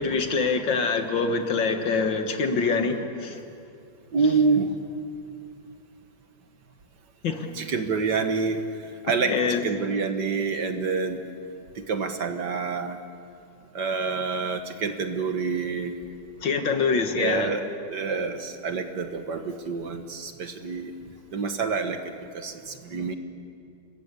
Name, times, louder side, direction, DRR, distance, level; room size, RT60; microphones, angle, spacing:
voice 1, 0.0-3.4 7.2-7.5 9.3-9.6 16.4-17.5, left 4 dB, 65° left, 6 dB, 2.3 m, -25 dB
voice 2, 4.1-4.7 7.5-8.6 9.0-11.2 11.8-13.0 13.7-16.0 17.1-17.6 17.9-20.9 21.3-23.1, right 4 dB, 60° right, 7 dB, 2.0 m, -27 dB
29.5 x 21.0 x 8.4 m, 2.5 s
omnidirectional pair, 2.2 m